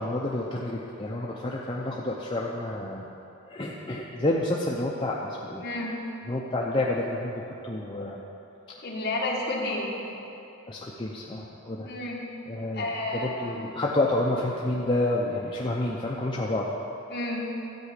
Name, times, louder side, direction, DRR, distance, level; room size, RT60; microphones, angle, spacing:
voice 1, 0.0-3.1 3.5-5.6 6.3-8.2 10.7-11.9 12.5-12.9 13.1-16.7, left 1 dB, 20° left, -4 dB, 0.6 m, -29 dB
voice 2, 5.6-6.0 8.8-9.9 11.8-12.2 12.7-13.6 17.1-17.5, left 2 dB, 45° left, -3 dB, 1.8 m, -31 dB
13.0 x 4.9 x 8.2 m, 2.9 s
head